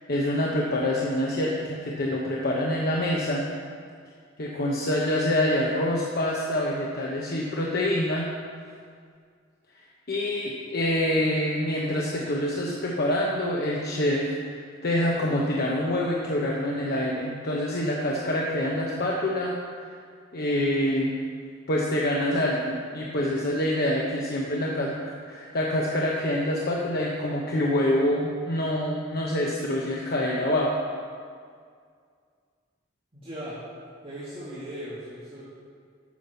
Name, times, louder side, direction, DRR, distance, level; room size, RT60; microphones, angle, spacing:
voice 1, 0.1-3.4 4.4-8.3 10.1-19.9 20.3-21.1 21.7-24.9 25.3-30.7, left 1 dB, 50° left, -3 dB, 1.0 m, -26 dB
voice 2, 33.1-33.6 34.0-35.4, equal, 30° right, -10 dB, 2.3 m, -38 dB
12.0 x 6.0 x 6.9 m, 2.2 s
head